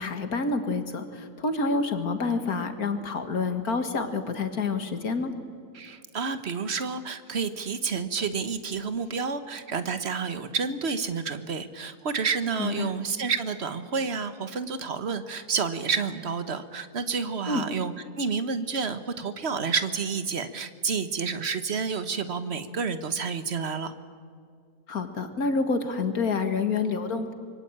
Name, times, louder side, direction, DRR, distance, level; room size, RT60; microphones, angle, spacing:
voice 1, 0.0-5.3 12.6-12.9 17.5-17.7 24.9-27.3, left 4 dB, 65° left, 8 dB, 2.2 m, -28 dB
voice 2, 5.7-17.9 18.2-23.9, right 5 dB, 45° right, 11 dB, 1.4 m, -29 dB
25.5 x 23.5 x 8.8 m, 2.2 s
omnidirectional pair, 1.7 m